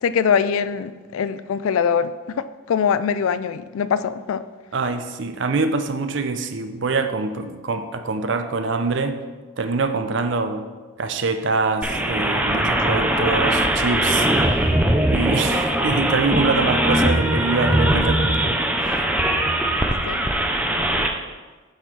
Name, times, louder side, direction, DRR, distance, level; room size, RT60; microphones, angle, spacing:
voice 1, 0.0-4.4 20.0-20.3, left 7 dB, 80° left, 14 dB, 0.3 m, -23 dB
voice 2, 4.7-9.2 9.6-10.7 11.0-14.7 15.1-19.0, right 3 dB, 60° right, 8 dB, 0.5 m, -25 dB
sound 1, 11.8-21.1, right 1 dB, 5° right, 0.4 m, -20 dB
8.0 x 4.4 x 4.6 m, 1.4 s
head